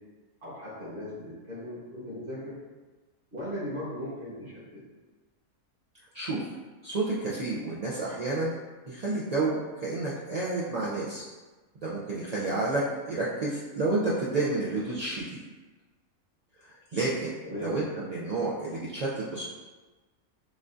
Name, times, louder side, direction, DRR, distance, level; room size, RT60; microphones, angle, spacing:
voice 1, 0.4-2.6 3.3-4.8 17.4-17.7, left 1 dB, 40° right, -9 dB, 1.4 m, -38 dB
voice 2, 6.8-8.5 8.9-11.2 11.8-15.4 16.6-17.3 17.6-19.4, right 2 dB, 70° right, -7 dB, 0.3 m, -30 dB
7.1 x 2.4 x 2.6 m, 1.3 s
omnidirectional pair, 1.5 m